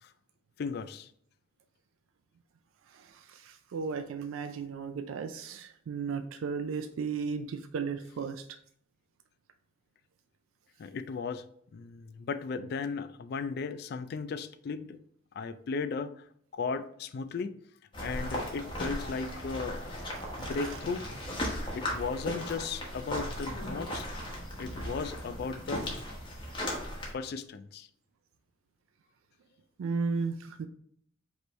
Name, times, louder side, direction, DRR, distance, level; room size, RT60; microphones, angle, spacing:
voice 1, 0.6-1.1 10.8-11.5 11.7-15.0 15.4-16.2 16.5-17.5 18.0-19.8 20.4-21.1 21.7-24.1 24.6-25.9 27.1-27.9, left 4 dB, 50° left, 0.3 m, -36 dB
voice 2, 2.9-8.4 20.2-20.5 29.8-30.7, right 5 dB, 90° right, 0.4 m, -35 dB
sound 1, 17.9-27.1, equal, 25° left, 1.1 m, -37 dB
5.1 x 3.1 x 3.1 m
head